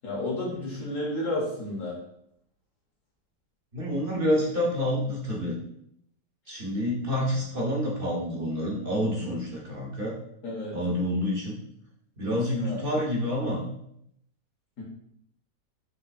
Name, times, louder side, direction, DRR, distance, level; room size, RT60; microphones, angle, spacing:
voice 1, 0.0-2.0 10.4-10.8 12.3-12.8 14.8-14.9, left 1 dB, 55° left, -2 dB, 1.2 m, -31 dB
voice 2, 3.7-5.6 6.5-10.1 10.7-11.6 12.2-13.6, equal, 45° right, -4 dB, 0.7 m, -28 dB
5.4 x 3.2 x 2.5 m, 0.73 s
omnidirectional pair, 1.9 m